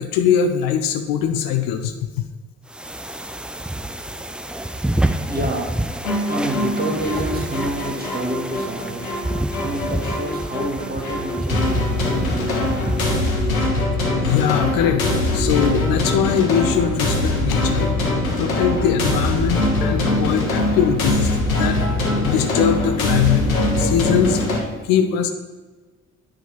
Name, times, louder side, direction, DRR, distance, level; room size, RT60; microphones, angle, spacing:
voice 1, 0.0-1.9 14.2-17.9 18.4-21.8 22.2-23.5 23.8-24.5 24.8-25.3, left 8 dB, 55° left, 7 dB, 0.7 m, -21 dB
sound 1, 2.7-13.4, right 1 dB, 5° right, 0.3 m, -28 dB
voice 2, 5.3-9.0 9.6-12.3, right 1 dB, 20° right, 1 dB, 1.8 m, -28 dB
sound 2, 6.0-24.6, left 1 dB, 80° left, 1.1 m, -22 dB
9.2 x 3.8 x 5.8 m, 1.3 s
figure-of-eight pair, 45°, 41 cm